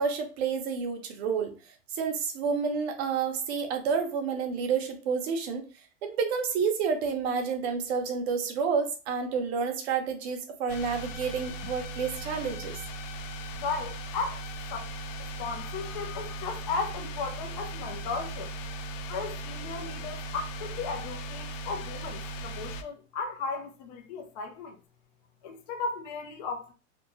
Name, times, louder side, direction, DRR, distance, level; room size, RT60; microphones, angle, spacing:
voice 1, 0.0-1.6 1.9-5.6 6.0-12.8, right 5 dB, 55° right, 0.8 m, -29 dB
sound 1, 10.7-22.8, right 1 dB, 85° left, 0.5 m, -38 dB
voice 2, 13.5-14.4 14.7-14.9 15.4-18.5 19.1-24.8 25.4-26.7, left 4 dB, 35° left, 0.5 m, -35 dB
2.6 x 2.2 x 2.9 m
supercardioid pair, 150°, 38 cm